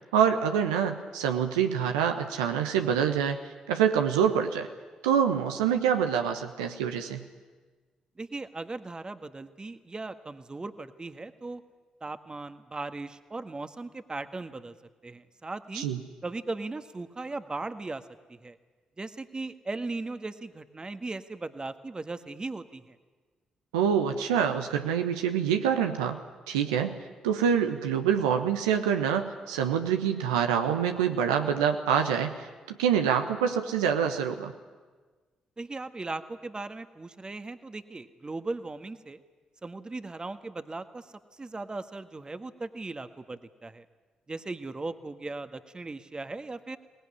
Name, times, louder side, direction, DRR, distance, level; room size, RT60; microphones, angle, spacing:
voice 1, 0.1-3.4 3.7-4.7 5.0-7.2 15.7-16.0 23.7-26.2 26.5-27.0 27.2-32.5 32.8-34.5, right 8 dB, 85° right, 5 dB, 1.1 m, -26 dB
voice 2, 8.2-11.6 12.0-14.7 15.0-15.9 16.2-18.0 18.3-18.6 19.0-22.9 35.6-39.2 39.6-41.1 41.4-43.8 44.3-46.8, right 3 dB, 30° right, 10 dB, 1.5 m, -38 dB
22.5 x 19.0 x 9.9 m, 1.4 s
hypercardioid pair, 40°, 3 cm